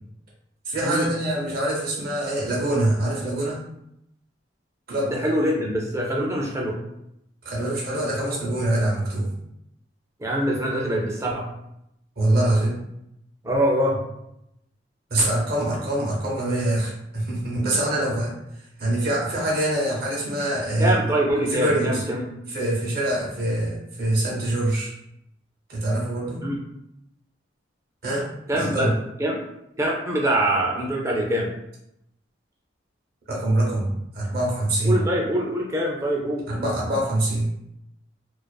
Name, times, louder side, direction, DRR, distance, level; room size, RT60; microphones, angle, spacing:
voice 1, 0.6-3.6 4.9-5.1 7.4-9.3 12.2-12.8 15.1-18.3 18.8-21.1 21.3-22.0 22.5-24.9 25.7-26.5 28.0-28.3 28.5-28.9 33.3-35.0 36.5-37.5, right 1 dB, 50° right, -4 dB, 0.7 m, -24 dB
voice 2, 5.1-6.8 10.2-11.5 13.4-14.0 20.8-22.4 26.4-26.6 28.5-28.9 29.2-29.4 29.8-31.5 34.8-36.4, right 1 dB, 15° right, -1 dB, 0.4 m, -24 dB
2.4 x 2.3 x 2.2 m, 0.81 s
head